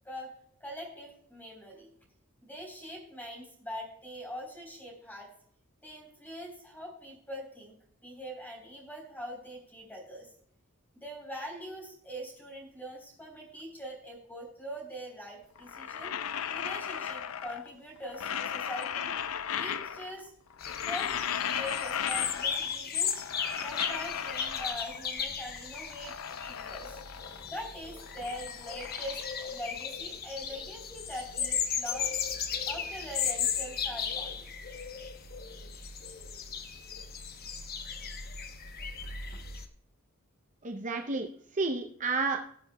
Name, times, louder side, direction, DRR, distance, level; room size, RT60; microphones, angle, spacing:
voice 1, 0.6-1.9 2.4-5.3 5.8-10.3 10.9-16.1 16.5-19.1 19.6-20.3 20.8-23.1 23.6-26.1 26.4-27.0 27.5-32.1 32.7-34.4, equal, 10° left, 0 dB, 3.7 m, -43 dB
sound 1, 15.6-17.7 18.0-20.2 20.5-22.7 23.0-25.1 25.6-27.6 27.8-30.0, left 8 dB, 80° left, 0.5 m, -36 dB
sound 2, 20.6-39.7, left 7 dB, 45° left, 0.9 m, -36 dB
voice 2, 40.6-42.4, right 3 dB, 35° right, 4 dB, 0.6 m, -31 dB
19.5 x 6.9 x 2.2 m, 0.66 s
head